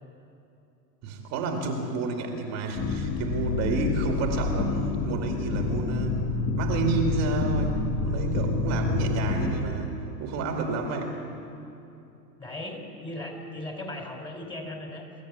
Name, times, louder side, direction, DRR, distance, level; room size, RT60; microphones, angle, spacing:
voice 1, 1.0-6.2 6.6-9.9 10.2-11.1, right 3 dB, 30° right, 2 dB, 2.4 m, -30 dB
sound 1, 2.8-9.5, left 3 dB, 25° left, 2.3 m, -28 dB
voice 2, 12.4-15.1, left 1 dB, 10° left, 2 dB, 3.8 m, -37 dB
24.0 x 13.5 x 9.6 m, 2.8 s
hypercardioid pair, 130°, 49 cm